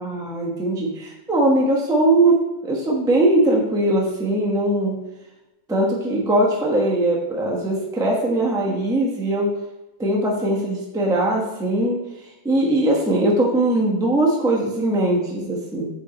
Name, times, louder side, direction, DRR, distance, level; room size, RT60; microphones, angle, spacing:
voice 1, 0.0-2.4 2.6-5.0 5.7-9.5 10.0-12.0 12.4-15.9, right 1 dB, 5° right, -3 dB, 0.6 m, -20 dB
8.2 x 3.7 x 4.0 m, 0.99 s
omnidirectional pair, 2.1 m